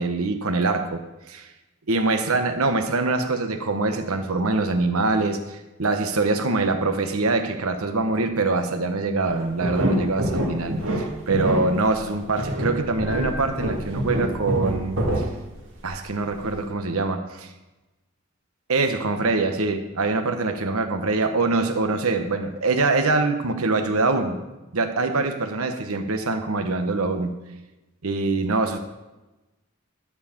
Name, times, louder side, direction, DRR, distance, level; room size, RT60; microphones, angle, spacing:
voice 1, 0.0-1.5 1.9-15.3 15.8-17.5 18.7-24.4 24.7-27.4 28.0-28.8, right 3 dB, 85° right, 7 dB, 1.1 m, -24 dB
sound 1, 9.2-16.0 16.4-16.5, equal, 65° right, 2.0 m, -26 dB
12.5 x 4.7 x 7.1 m, 1.1 s
head